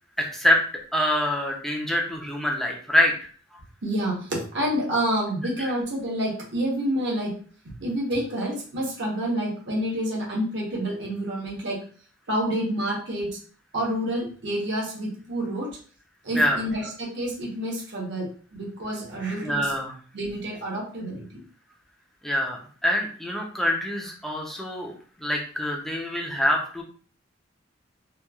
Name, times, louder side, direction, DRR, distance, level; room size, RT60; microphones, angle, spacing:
voice 1, 0.2-0.6 0.9-3.3 5.6-5.7 16.3-16.6 19.4-19.9 22.2-26.8, equal, ahead, 0 dB, 0.5 m, -25 dB
voice 2, 3.8-7.3 7.6-11.8 12.3-13.4 13.7-15.8 16.2-19.7 20.1-21.4, right 1 dB, 65° right, -3 dB, 1.0 m, -28 dB
2.9 x 2.3 x 2.3 m, 0.44 s
head